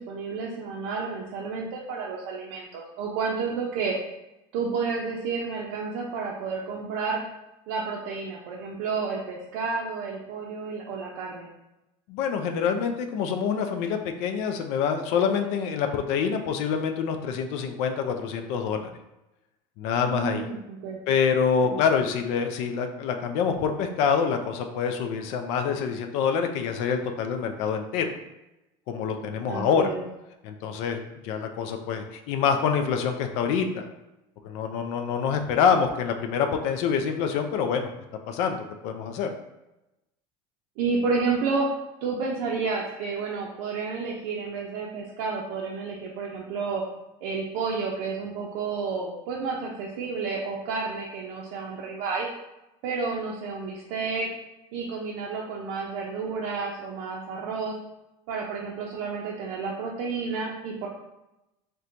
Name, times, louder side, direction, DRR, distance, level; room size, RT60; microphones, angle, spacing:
voice 1, 0.0-3.9 4.5-7.2 7.7-11.5 20.0-21.0 21.6-21.8 29.5-30.0 40.8-41.7 42.0-46.8 47.2-52.3 52.8-54.3 54.7-57.7 58.3-60.9, right 4 dB, 75° right, -3 dB, 0.5 m, -30 dB
voice 2, 12.1-18.9 19.8-20.5 21.1-28.1 28.9-29.9 30.4-33.9 34.4-37.9 38.3-38.6 38.8-39.3, left 6 dB, 65° left, 5 dB, 0.4 m, -26 dB
4.3 x 2.2 x 2.5 m, 0.94 s
cardioid pair, 140°, 12 cm